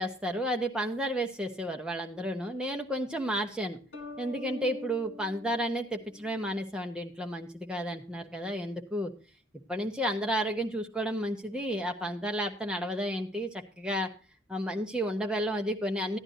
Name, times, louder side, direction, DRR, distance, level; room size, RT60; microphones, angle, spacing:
voice 1, 0.0-3.8 4.2-9.1 9.7-14.1 14.5-16.2, equal, 5° right, 3 dB, 1.0 m, -32 dB
sound 1, 3.9-6.6, left 3 dB, 80° left, 2.3 m, -45 dB
15.0 x 10.5 x 2.7 m, 0.36 s
head